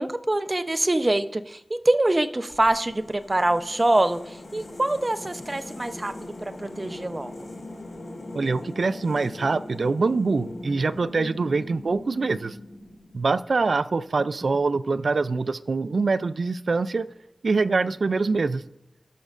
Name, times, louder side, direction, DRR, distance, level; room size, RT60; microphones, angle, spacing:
voice 1, 0.0-6.1 6.6-7.3, right 1 dB, 35° right, 11 dB, 0.6 m, -24 dB
sound 1, 2.5-13.6, left 2 dB, 80° left, 2.2 m, -40 dB
voice 2, 8.3-12.6 13.1-17.1 17.4-18.6, right 4 dB, 75° right, 15 dB, 0.3 m, -24 dB
18.0 x 6.4 x 2.5 m, 0.92 s
cardioid pair, 40°, 0 cm